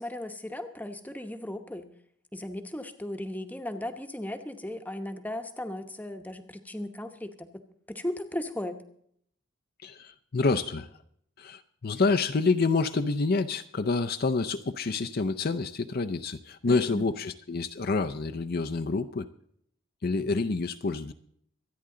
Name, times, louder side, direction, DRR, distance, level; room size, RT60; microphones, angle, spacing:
voice 1, 0.0-1.9 2.3-7.6 7.9-8.8 16.6-17.1, left 1 dB, 10° left, 7 dB, 0.9 m, -36 dB
voice 2, 9.8-10.9 11.4-19.3 20.0-21.1, left 3 dB, 45° left, 7 dB, 0.6 m, -28 dB
24.5 x 9.6 x 3.8 m, 0.67 s
head